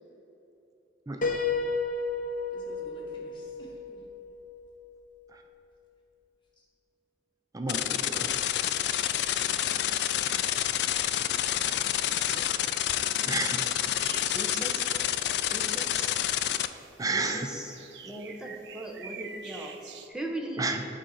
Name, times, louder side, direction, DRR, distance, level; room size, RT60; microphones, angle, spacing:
Piano, 1.2-5.0, left 4 dB, 45° left, 0.8 m, -32 dB
voice 1, 2.5-4.0 11.5-12.4 14.0-14.2, equal, 30° left, -4 dB, 1.8 m, -52 dB
voice 2, 7.5-8.3 13.2-13.7 17.0-17.5 20.6-20.9, right 3 dB, 20° right, 4 dB, 0.5 m, -31 dB
sound 1, 7.7-16.7, left 11 dB, 65° left, 0.3 m, -28 dB
voice 3, 12.2-12.7 13.6-13.8 14.3-14.8 15.4-16.2 17.1-17.6 18.0-20.6, right 1 dB, 5° right, 0 dB, 0.9 m, -39 dB
sound 2, 14.0-20.1, right 6 dB, 70° right, 0.7 m, -47 dB
8.8 x 4.1 x 6.4 m, 2.9 s
head